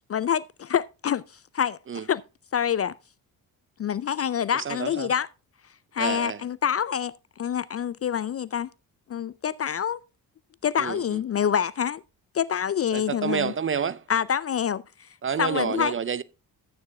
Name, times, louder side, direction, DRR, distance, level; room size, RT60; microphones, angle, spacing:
voice 1, 0.1-2.2 2.5-3.0 3.8-5.3 5.9-8.7 9.1-10.0 10.6-12.0 12.3-13.5 14.1-15.1 15.4-15.9, left 8 dB, 35° left, 0.4 m, -26 dB
voice 2, 4.6-5.1 6.0-6.4 10.8-11.2 12.9-14.1 15.2-16.2, right 6 dB, 30° right, 0.5 m, -29 dB
13.5 x 9.4 x 2.2 m
hypercardioid pair, 45°, 47 cm